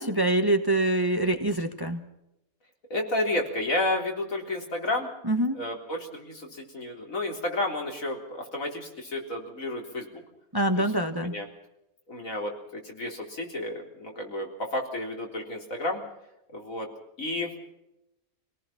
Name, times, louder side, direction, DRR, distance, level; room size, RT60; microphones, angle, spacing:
voice 1, 0.0-2.0 5.3-5.6 10.5-11.3, right 1 dB, 15° right, 7 dB, 1.2 m, -25 dB
voice 2, 2.9-5.1 5.5-10.2 10.8-10.9 11.2-11.5 12.1-16.0 16.5-16.9 17.2-17.5, left 1 dB, 70° left, 1 dB, 4.2 m, -31 dB
27.0 x 18.0 x 5.8 m, 0.88 s
omnidirectional pair, 1.5 m